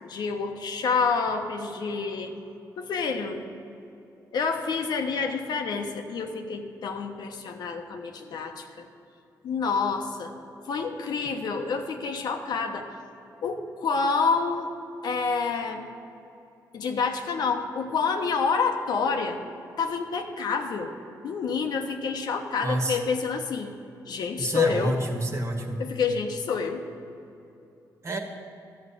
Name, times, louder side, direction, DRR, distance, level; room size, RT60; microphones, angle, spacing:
voice 1, 0.0-2.4 2.8-3.5 4.3-8.9 9.4-10.3 10.7-12.8 13.4-14.7 15.0-15.9 16.7-19.4 19.8-20.9 21.2-23.7 24.1-25.0 25.8-26.9, left 5 dB, 70° left, 4 dB, 1.1 m, -28 dB
voice 2, 22.6-23.0 24.4-25.8 28.0-28.2, right 1 dB, 40° right, 4 dB, 1.6 m, -28 dB
12.0 x 5.8 x 8.5 m, 2.8 s
cardioid pair, 85°, 7 cm